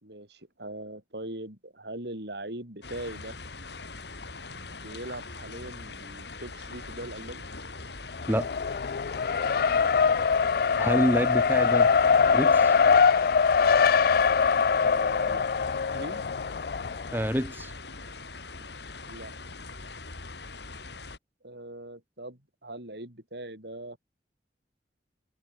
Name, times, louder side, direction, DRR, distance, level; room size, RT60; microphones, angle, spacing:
voice 1, 0.0-3.4 4.5-7.5 9.9-10.3 14.8-15.5 15.9-16.2 19.1-19.3 21.4-24.0, right 1 dB, 65° right, 6.1 m, -41 dB
sound 1, 2.8-21.2, left 3 dB, 70° left, 3.2 m, -42 dB
Race car auto racing, 8.1-17.2, left 5 dB, 55° left, 0.4 m, -23 dB
voice 2, 10.8-11.9 12.3-12.7 17.1-17.7, equal, 10° right, 2.7 m, -27 dB
head